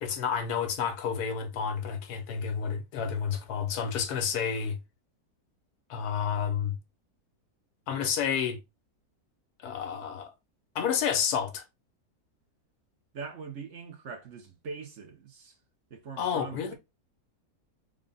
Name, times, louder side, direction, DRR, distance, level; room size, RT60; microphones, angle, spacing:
voice 1, 0.0-4.8 5.9-6.8 7.9-8.6 9.6-10.3 10.7-11.6 16.2-16.7, left 7 dB, 80° left, 1.3 m, -30 dB
voice 2, 13.1-15.6 15.9-16.7, right 5 dB, 55° right, 1.0 m, -42 dB
3.8 x 2.2 x 3.7 m
omnidirectional pair, 1.6 m